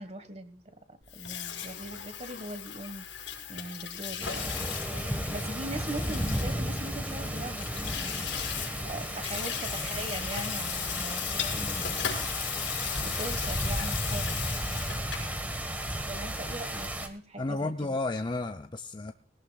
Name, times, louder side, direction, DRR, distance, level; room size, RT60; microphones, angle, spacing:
voice 1, 0.0-4.5 5.3-12.3 13.0-14.4 16.1-18.0, right 1 dB, 35° right, 10 dB, 1.5 m, -41 dB
Water tap faucet / Sink (filling or washing), 1.0-15.3, left 9 dB, 90° left, 5.1 m, -37 dB
sound 1, 4.2-17.1, right 1 dB, 10° right, 1.4 m, -34 dB
voice 2, 17.4-19.1, left 2 dB, 25° left, 6 dB, 0.6 m, -32 dB
20.0 x 17.5 x 2.4 m, 0.43 s
head